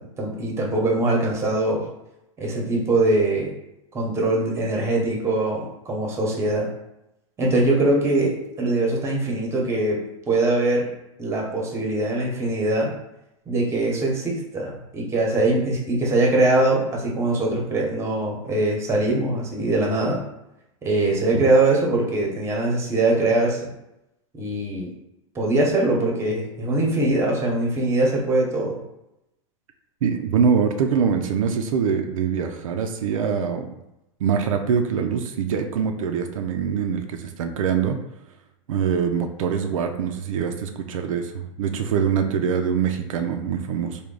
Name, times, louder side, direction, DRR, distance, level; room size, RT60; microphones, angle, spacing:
voice 1, 0.0-1.9 2.4-3.5 3.9-6.7 7.4-10.0 10.3-10.9 11.2-12.9 13.5-20.2 20.8-23.7 24.3-24.9 25.3-28.8, right 2 dB, 15° right, -1 dB, 0.9 m, -22 dB
voice 2, 30.0-33.7 34.2-38.0 38.7-44.0, right 7 dB, 80° right, 5 dB, 0.5 m, -24 dB
3.4 x 2.2 x 3.8 m, 0.87 s
supercardioid pair, 130°, 17 cm